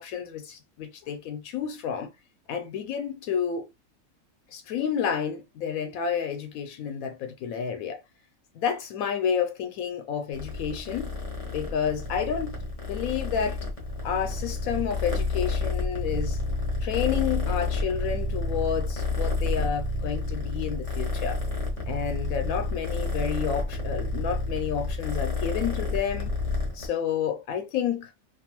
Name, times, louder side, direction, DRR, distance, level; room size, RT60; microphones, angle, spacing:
voice 1, 0.0-2.1 2.5-3.7 4.5-8.0 8.5-11.1 11.5-12.5 12.8-13.7 14.0-16.4 16.8-21.4 21.9-26.3 26.7-28.1, left 7 dB, 85° left, 1.0 m, -30 dB
Purr, 10.3-26.9, left 3 dB, 30° left, 0.8 m, -30 dB
2.5 x 2.3 x 2.9 m
omnidirectional pair, 1.4 m